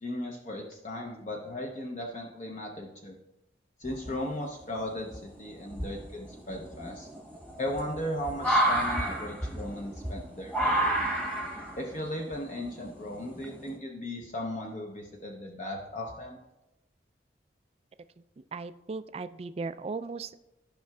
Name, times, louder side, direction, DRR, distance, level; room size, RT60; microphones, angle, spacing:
voice 1, 0.0-3.2 3.8-7.1 7.6-11.0 11.7-16.4, left 1 dB, 40° left, 0 dB, 0.7 m, -37 dB
sound 1, 3.8-4.5 5.1-5.2 5.7-13.7, right 1 dB, 10° left, 1.2 m, -30 dB
voice 2, 18.2-20.4, right 4 dB, 35° right, 12 dB, 0.3 m, -37 dB
13.5 x 5.7 x 2.3 m, 0.94 s
head